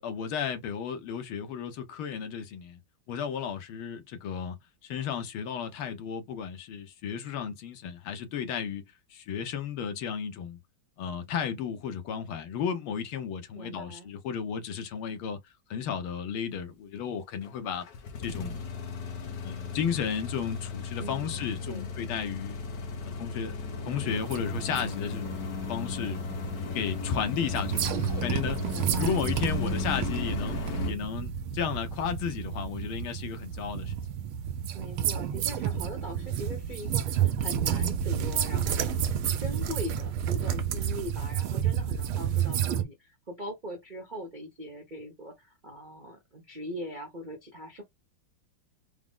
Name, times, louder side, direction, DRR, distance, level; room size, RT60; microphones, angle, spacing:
voice 1, 0.0-2.8 3.1-4.6 4.8-8.8 9.1-10.6 11.0-15.4 15.7-17.8 18.2-18.7 19.3-22.6 23.0-23.5 23.9-26.2 26.7-27.9 28.2-28.7 29.0-33.9, left 7 dB, 80° left, 1.8 m, -33 dB
voice 2, 13.5-14.1 21.0-21.9 28.6-29.2 34.7-39.1 39.4-47.8, equal, 50° right, 0.5 m, -41 dB
sound 1, 17.4-30.9, left 4 dB, 55° left, 1.3 m, -35 dB
sound 2, 24.1-42.8, right 9 dB, 85° right, 1.6 m, -31 dB
4.7 x 2.0 x 3.7 m
omnidirectional pair, 2.3 m